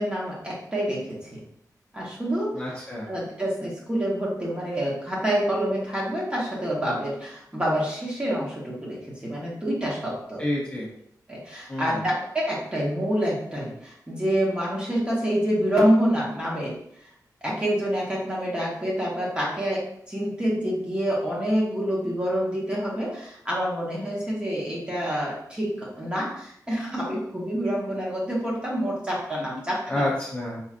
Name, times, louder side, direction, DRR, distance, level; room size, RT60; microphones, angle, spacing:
voice 1, 0.0-1.4 1.9-2.7 3.1-10.4 11.3-16.8 17.4-30.1, equal, 15° right, -5 dB, 1.0 m, -27 dB
voice 2, 2.5-3.1 10.4-10.9 11.7-12.0 29.9-30.6, left 1 dB, 20° left, -6 dB, 0.6 m, -28 dB
4.3 x 2.4 x 2.4 m, 0.71 s
wide cardioid pair, 165°, 7 cm